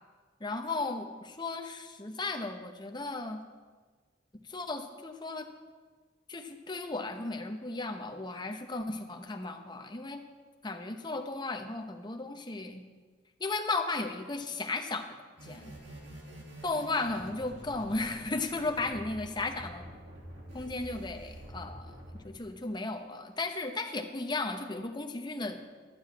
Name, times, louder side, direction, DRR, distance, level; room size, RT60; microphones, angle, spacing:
voice 1, 0.4-3.4 4.5-5.5 6.3-10.2 10.6-12.8 13.4-15.2 15.4-15.7 16.6-19.9 20.5-21.9 22.2-25.6, left 3 dB, 25° left, 6 dB, 0.8 m, -35 dB
sound 1, 15.4-22.2, equal, 65° right, 2.7 m, -47 dB
11.5 x 5.5 x 8.6 m, 1.4 s
head